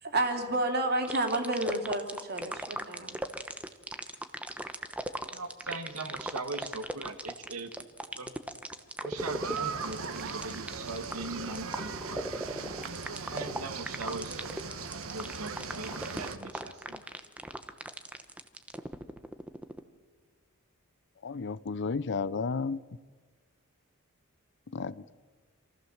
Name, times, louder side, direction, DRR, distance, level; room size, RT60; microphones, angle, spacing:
voice 1, 0.0-3.2, right 2 dB, 50° right, 4 dB, 2.8 m, -30 dB
sound 1, 1.1-19.8, right 1 dB, 5° right, 1.0 m, -38 dB
voice 2, 5.2-7.9 8.2-8.3 9.0-12.3 13.3-14.7 15.1-17.0, right 3 dB, 80° right, 8 dB, 1.7 m, -40 dB
sound 2, 9.2-16.4, right 5 dB, 65° right, 1.4 m, -39 dB
voice 3, 21.2-22.8 24.7-25.1, left 4 dB, 55° left, 17 dB, 0.6 m, -32 dB
26.5 x 15.0 x 7.2 m, 1.5 s
head